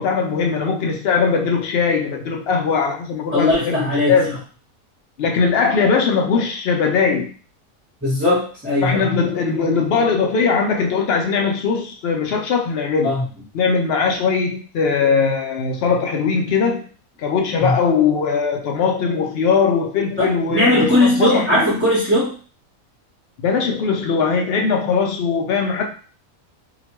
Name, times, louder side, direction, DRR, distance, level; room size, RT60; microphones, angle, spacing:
voice 1, 0.0-4.4 5.2-7.3 8.8-13.1 13.5-16.9 17.2-21.8 23.4-25.8, left 5 dB, 65° left, 2 dB, 0.6 m, -20 dB
voice 2, 3.3-4.1 8.0-9.0 13.0-13.2 17.6-17.8 20.2-22.3, left 1 dB, 10° right, -9 dB, 0.8 m, -18 dB
2.8 x 2.1 x 2.9 m, 0.38 s
omnidirectional pair, 1.5 m